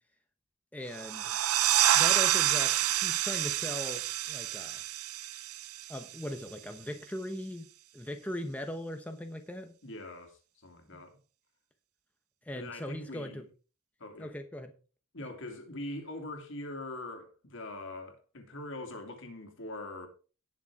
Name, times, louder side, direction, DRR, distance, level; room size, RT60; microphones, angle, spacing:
voice 1, 0.7-1.4 1.9-4.8 5.9-7.7 7.9-9.7 10.9-11.0 12.4-13.4 14.2-14.7 15.2-15.3, left 1 dB, 5° left, 0.9 m, -39 dB
sound 1, 0.9-6.3, right 12 dB, 80° right, 0.7 m, -28 dB
voice 2, 9.8-11.2 12.5-13.4 14.0-14.3 15.1-20.1, left 2 dB, 60° left, 2.7 m, -42 dB
18.0 x 6.7 x 3.6 m
head